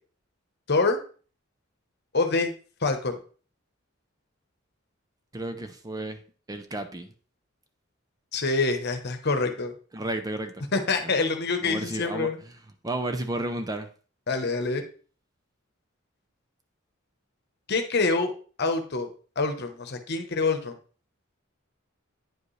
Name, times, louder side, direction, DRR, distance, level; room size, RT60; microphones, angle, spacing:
voice 1, 0.7-1.0 2.1-2.5 2.8-3.2 8.3-9.7 10.7-12.4 14.3-14.8 17.7-18.3 18.6-19.1 19.4-20.8, left 3 dB, 55° left, 7 dB, 1.0 m, -26 dB
voice 2, 5.3-6.2 6.5-7.1 9.9-10.6 11.0-11.1 11.6-12.5 12.8-13.9, right 1 dB, 20° right, 7 dB, 0.6 m, -32 dB
9.3 x 5.1 x 3.2 m, 0.40 s
head